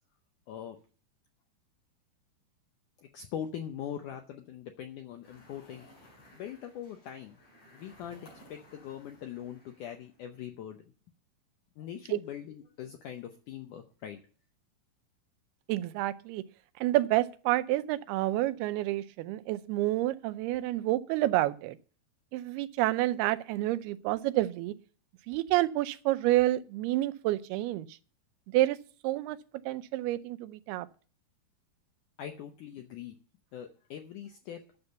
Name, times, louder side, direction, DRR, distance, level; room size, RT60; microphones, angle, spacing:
voice 1, 3.0-5.9 6.3-7.4 7.7-10.8 11.8-14.2 32.2-33.2 33.5-34.6, left 9 dB, 75° left, 1.9 m, -42 dB
sound 1, 5.2-10.5, left 1 dB, 45° left, 5.8 m, -58 dB
voice 2, 15.7-16.4 16.8-21.8 22.3-24.7 25.3-27.9 28.5-28.8 29.0-29.4 29.7-30.9, right 16 dB, 85° right, 2.6 m, -29 dB
9.7 x 6.9 x 8.0 m
omnidirectional pair, 4.5 m